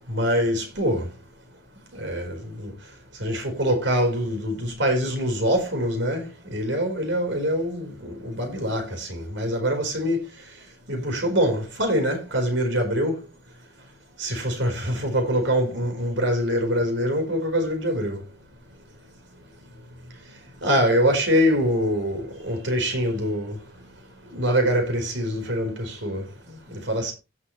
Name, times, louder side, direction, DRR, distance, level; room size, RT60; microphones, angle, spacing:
voice 1, 0.1-1.1 1.9-2.7 3.2-10.2 10.9-13.2 14.2-18.2 20.6-23.6 24.3-27.1, equal, 80° right, 4.5 m, -24 dB
16.5 x 6.5 x 3.2 m
head